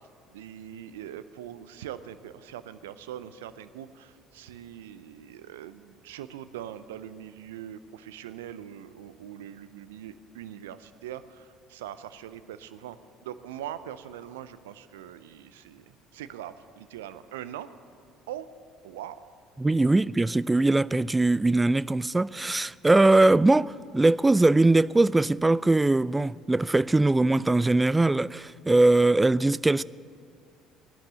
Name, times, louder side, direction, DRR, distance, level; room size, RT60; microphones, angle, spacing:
voice 1, 0.3-13.0 13.2-17.7 18.3-18.5 18.8-19.3 19.6-19.9, right 11 dB, 80° right, 0.6 m, -42 dB
voice 2, 19.6-29.8, right 2 dB, 15° right, 0.3 m, -21 dB
16.0 x 11.5 x 6.8 m
hypercardioid pair, 60°, 0 cm